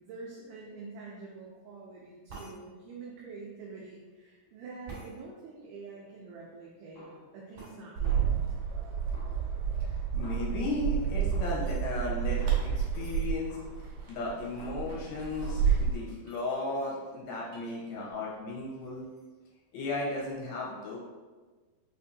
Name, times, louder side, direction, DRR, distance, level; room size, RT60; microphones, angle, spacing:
voice 1, 0.0-8.3, right 4 dB, 85° right, -4 dB, 1.8 m, -46 dB
sound 1, 2.3-2.6 4.9-5.1 7.5-7.8 10.8-11.9 12.9-13.3 14.0-14.1 14.2-14.6 15.2-15.4 16.2-17.7 18.1-18.5 18.8-19.3, right 4 dB, 55° right, 1.5 m, -50 dB
Snare drum, 7.0-7.8 8.0-8.8 9.1-10.9 11.3-13.0 13.5-15.1 15.4-15.7, equal, 65° left, 1.2 m, -53 dB
Bird, 8.0-15.9, right 7 dB, 70° right, 1.8 m, -30 dB
voice 2, 10.1-13.6 14.1-19.0 19.7-21.0, left 2 dB, 90° left, -4 dB, 2.7 m, -35 dB
6.2 x 2.5 x 2.7 m, 1.4 s
omnidirectional pair, 4.4 m